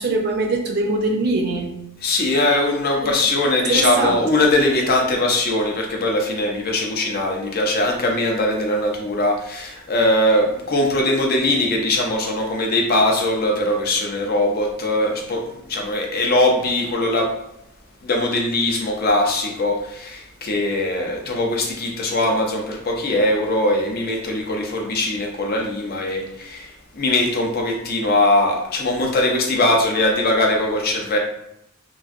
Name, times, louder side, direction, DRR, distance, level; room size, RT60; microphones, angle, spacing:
voice 1, 0.0-1.7 3.0-3.1 3.5-4.2, right 2 dB, 50° right, 1 dB, 0.5 m, -22 dB
voice 2, 2.0-17.3 18.0-31.2, left 1 dB, 45° left, 1 dB, 0.6 m, -21 dB
3.0 x 2.5 x 2.5 m, 0.81 s
head